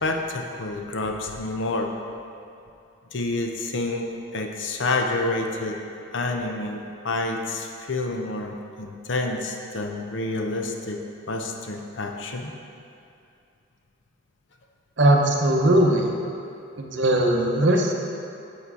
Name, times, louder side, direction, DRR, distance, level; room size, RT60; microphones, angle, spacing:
voice 1, 0.0-1.9 3.1-4.1 4.3-5.8 6.1-11.0 11.3-12.5, left 2 dB, 60° left, 3 dB, 0.7 m, -28 dB
voice 2, 15.0-16.1 16.8-17.9, right 1 dB, 55° right, 1 dB, 0.8 m, -19 dB
8.3 x 4.9 x 4.7 m, 2.6 s
head